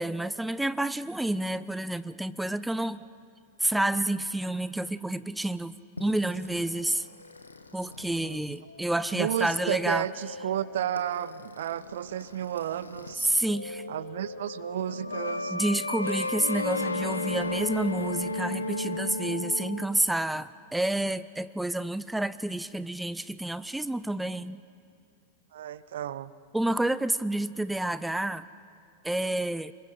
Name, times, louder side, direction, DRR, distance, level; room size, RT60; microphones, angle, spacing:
voice 1, 0.0-3.0 3.6-7.1 7.7-10.0 13.2-13.8 15.5-24.6 26.5-28.5 29.0-29.7, right 1 dB, 5° right, 16 dB, 0.4 m, -29 dB
sound 1, 6.0-13.1 13.4-19.8, left 2 dB, 80° left, 1.1 m, -35 dB
voice 2, 9.1-13.3 13.9-15.6 25.5-26.3, right 11 dB, 60° right, 18 dB, 0.6 m, -32 dB
26.5 x 22.0 x 5.7 m, 2.5 s
figure-of-eight pair, 90°, 0 cm